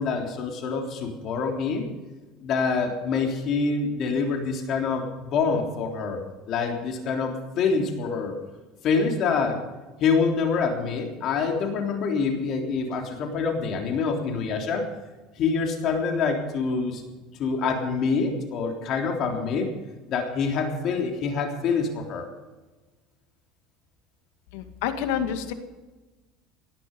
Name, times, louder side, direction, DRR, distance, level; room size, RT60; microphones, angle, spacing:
voice 1, 0.0-1.9 2.4-8.3 8.8-9.6 10.0-14.9 15.4-17.0 17.4-19.7 20.1-22.3, left 5 dB, 50° left, 2 dB, 3.4 m, -26 dB
voice 2, 24.5-25.5, left 9 dB, 80° left, 8 dB, 2.1 m, -28 dB
19.0 x 11.5 x 5.4 m, 1.2 s
supercardioid pair, 125°, 0 cm